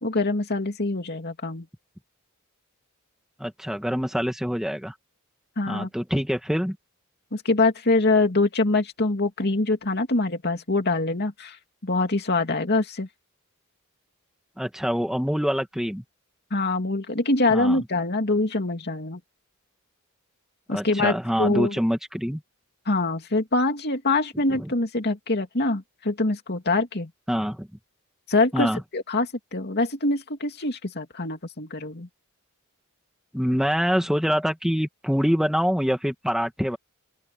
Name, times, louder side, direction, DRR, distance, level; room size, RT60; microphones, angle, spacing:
voice 1, 0.0-1.7 5.6-5.9 7.3-11.6 11.8-13.1 16.5-19.2 20.7-21.8 22.9-27.1 28.3-32.1, left 2 dB, 50° left, 2.7 m, -24 dB
voice 2, 3.4-4.9 5.7-6.8 14.6-16.0 17.5-17.8 20.7-22.4 24.5-24.7 27.3-27.7 28.5-28.8 33.3-36.8, equal, ahead, 1.5 m, -25 dB
open air
head